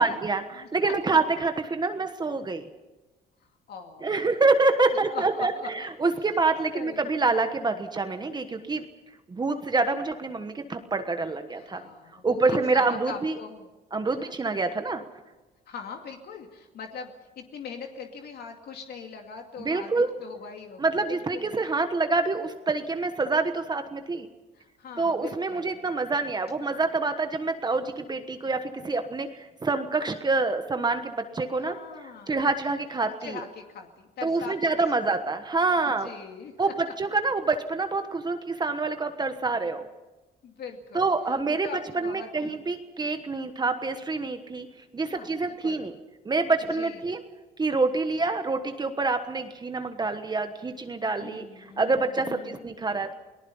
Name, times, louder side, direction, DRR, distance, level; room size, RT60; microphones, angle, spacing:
voice 1, 0.0-0.4 0.7-2.7 4.0-8.8 9.3-11.9 12.2-13.3 13.9-15.0 19.6-20.1 20.8-24.3 25.0-31.8 32.3-33.4 34.2-36.1 36.6-39.9 40.9-44.7 44.9-45.9 46.2-47.2 47.6-53.1, right 3 dB, 25° right, 7 dB, 1.3 m, -26 dB
voice 2, 0.5-1.2 3.7-4.3 5.1-5.9 6.3-6.4 6.7-7.2 11.5-13.7 14.2-14.3 15.7-21.6 24.5-25.8 31.6-32.5 33.2-35.2 35.8-36.9 40.4-41.1 41.5-42.7 45.1-45.9 46.7-47.1 51.2-52.6, left 5 dB, 60° left, 3 dB, 2.4 m, -42 dB
29.0 x 19.0 x 5.6 m, 1.1 s
cardioid pair, 120°, 18 cm